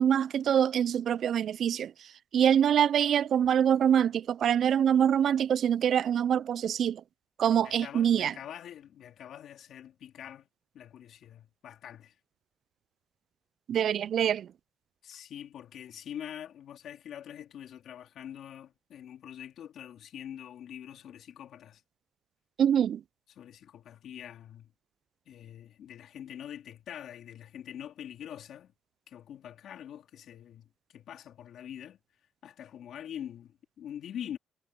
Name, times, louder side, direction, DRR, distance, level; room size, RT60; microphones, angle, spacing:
voice 1, 0.0-7.0 7.4-8.3 13.7-14.5 22.6-23.0, right 9 dB, 65° right, 0.3 m, -25 dB
voice 2, 7.4-10.5 10.7-12.1 15.0-21.8 23.4-24.7 25.3-28.7 29.1-32.0 32.4-34.4, left 10 dB, 70° left, 3.1 m, -44 dB
cardioid pair, 90°, 0 cm